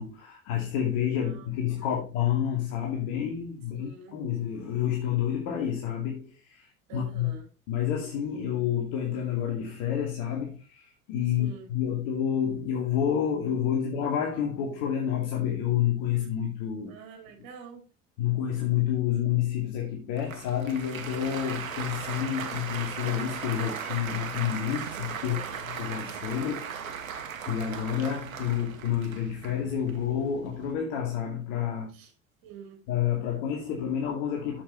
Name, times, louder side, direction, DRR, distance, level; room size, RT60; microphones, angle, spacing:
voice 1, 0.0-7.3 7.7-16.9 18.2-31.9 32.9-34.6, left 9 dB, 65° left, 2.5 m, -29 dB
voice 2, 1.2-1.5 1.8-2.0 3.7-4.2 6.9-7.5 11.4-11.7 16.8-17.8 24.9-25.6 31.9-32.1 32.4-32.9, right 6 dB, 55° right, 4.0 m, -47 dB
Applause, 20.1-30.7, right 7 dB, 90° right, 1.4 m, -38 dB
7.7 x 7.2 x 4.5 m
hypercardioid pair, 75°, 40 cm